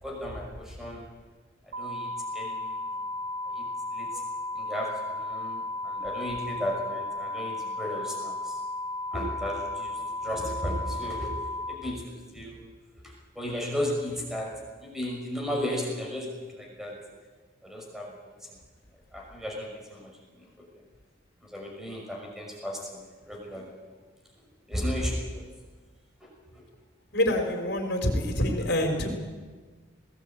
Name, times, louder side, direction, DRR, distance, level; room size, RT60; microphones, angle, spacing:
voice 1, 0.0-1.0 1.8-2.1 2.3-2.8 3.5-3.7 3.9-4.2 4.5-8.6 9.1-12.7 13.4-16.9 17.6-18.1 19.1-20.1 21.4-23.7 24.7-25.4 26.5-26.6, equal, ahead, -1 dB, 5.7 m, -34 dB
sound 1, 1.7-11.7, left 2 dB, 50° right, 1.8 m, -34 dB
voice 2, 27.1-29.1, left 1 dB, 60° left, 4 dB, 4.7 m, -26 dB
20.5 x 18.5 x 9.2 m, 1.4 s
head